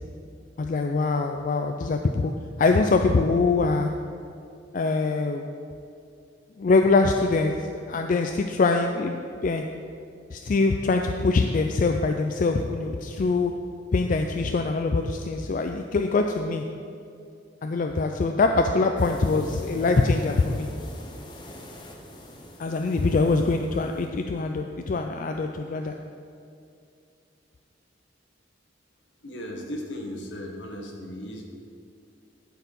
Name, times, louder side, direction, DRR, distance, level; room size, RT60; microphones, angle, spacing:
voice 1, 0.6-2.3 2.6-3.9 4.7-5.5 6.6-9.2 9.4-9.6 10.3-13.5 13.9-16.6 17.6-20.7 22.6-25.9, left 3 dB, 45° left, 4 dB, 0.3 m, -23 dB
sound 1, 19.0-24.1, left 1 dB, 25° left, 0.9 m, -43 dB
voice 2, 29.2-31.4, equal, 75° left, 1 dB, 1.3 m, -36 dB
11.5 x 4.7 x 5.4 m, 2.5 s
head